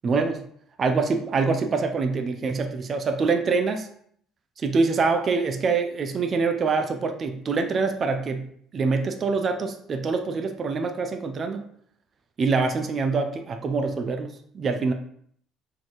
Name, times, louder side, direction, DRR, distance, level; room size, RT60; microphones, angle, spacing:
voice 1, 0.0-0.4 0.8-3.9 4.6-8.5 8.7-11.7 12.4-14.9, right 4 dB, 40° right, 6 dB, 0.7 m, -25 dB
5.0 x 4.0 x 4.7 m, 0.64 s
supercardioid pair, 95°, 0 cm